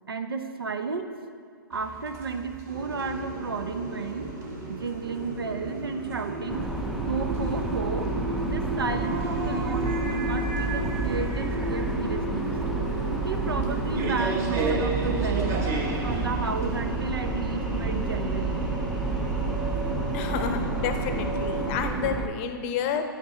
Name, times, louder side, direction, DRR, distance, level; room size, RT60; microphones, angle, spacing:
voice 1, 0.1-1.1 1.7-4.3 4.7-6.6 7.0-8.1 8.5-12.6 13.2-15.6 16.0-18.6, right 4 dB, 80° right, 7 dB, 0.7 m, -32 dB
sound 1, 1.7-17.1, right 3 dB, 25° right, 0.7 m, -36 dB
sound 2, 2.7-21.8, equal, 55° right, 1.8 m, -34 dB
sound 3, 6.5-22.3, right 3 dB, ahead, 0.4 m, -30 dB
voice 2, 20.1-23.0, left 7 dB, 35° left, 7 dB, 0.7 m, -30 dB
9.1 x 5.9 x 4.3 m, 2.1 s
hypercardioid pair, 125°, 12 cm